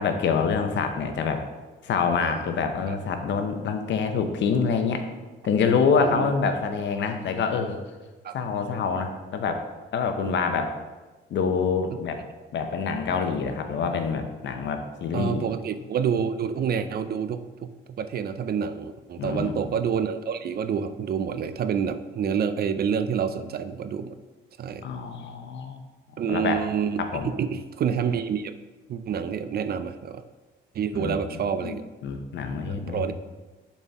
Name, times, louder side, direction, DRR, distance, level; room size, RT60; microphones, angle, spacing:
voice 1, 0.0-1.4 1.8-5.0 5.4-7.8 8.3-9.6 9.9-10.7 11.3-12.2 12.5-15.4 19.2-19.7 24.8-25.8 26.3-26.6 27.0-27.3 30.9-33.1, left 5 dB, 65° left, 6 dB, 0.8 m, -26 dB
voice 2, 6.0-6.3 8.2-8.4 10.3-10.4 15.1-24.2 24.6-24.9 26.2-28.5 28.9-30.2 30.7-31.8 32.7-33.1, right 7 dB, 50° right, 11 dB, 0.5 m, -28 dB
7.1 x 4.2 x 3.5 m, 1.3 s
cardioid pair, 90°, 20 cm